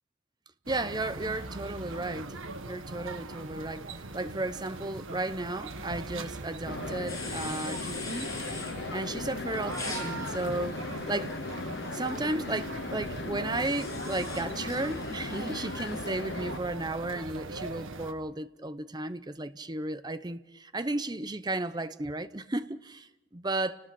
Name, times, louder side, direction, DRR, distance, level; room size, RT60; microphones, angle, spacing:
voice 1, 0.7-2.4 2.7-8.3 8.9-11.3 11.9-23.8, right 2 dB, 20° right, 0.8 m, -34 dB
sound 1, 0.7-18.1, right 3 dB, 80° right, 1.7 m, -41 dB
sound 2, 6.7-16.6, left 3 dB, 55° left, 0.8 m, -38 dB
sound 3, 7.1-8.7 9.7-12.1 13.6-16.2, left 3 dB, 15° left, 7.1 m, -43 dB
29.5 x 19.5 x 6.1 m
head